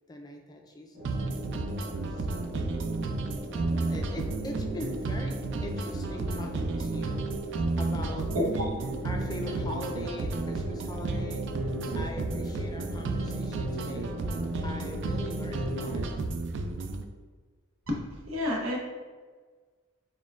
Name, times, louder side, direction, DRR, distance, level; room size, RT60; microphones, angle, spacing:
voice 1, 0.1-2.7 3.7-8.4 9.0-14.2 14.6-16.0, left 1 dB, 20° left, 3 dB, 0.3 m, -42 dB
sound 1, 0.9-16.1, equal, 25° right, 1.4 m, -40 dB
sound 2, 1.1-17.1, right 3 dB, 60° right, 0.3 m, -32 dB
voice 2, 8.3-8.7 17.9-18.0 18.3-18.8, left 1 dB, 90° right, -1 dB, 0.9 m, -28 dB
4.2 x 3.7 x 2.4 m, 1.4 s
head